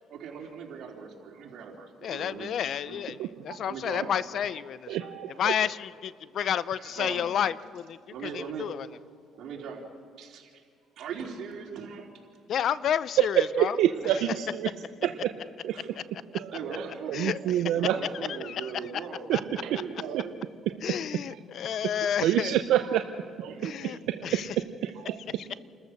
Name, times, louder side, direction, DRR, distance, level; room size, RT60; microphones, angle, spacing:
voice 1, 0.1-2.5 2.9-3.0 3.7-4.1 5.1-5.2 6.7-7.3 8.1-8.8 9.4-9.9 10.2-10.5 11.0-12.1 14.0-14.4 15.0-15.1 15.6-15.9 16.5-17.1 17.7-20.3 23.5-23.7, right 6 dB, 65° right, -1 dB, 3.7 m, -40 dB
voice 2, 2.0-5.0 5.4-8.9 12.5-13.8 17.1-17.6 18.4-18.7 19.3-19.4 20.8-22.5 23.6-24.5, left 9 dB, 60° left, 17 dB, 0.5 m, -31 dB
voice 3, 3.2-3.6 4.9-5.5 7.0-7.1 13.6-14.7 15.0-15.1 15.6-15.7 16.3-18.0 19.3-20.2 21.3-21.4 21.7-23.0 23.4-23.6 23.8-24.4 24.8-25.2, right 11 dB, 85° right, 7 dB, 0.7 m, -28 dB
29.0 x 14.0 x 6.6 m, 2.2 s
cardioid pair, 105°, 0 cm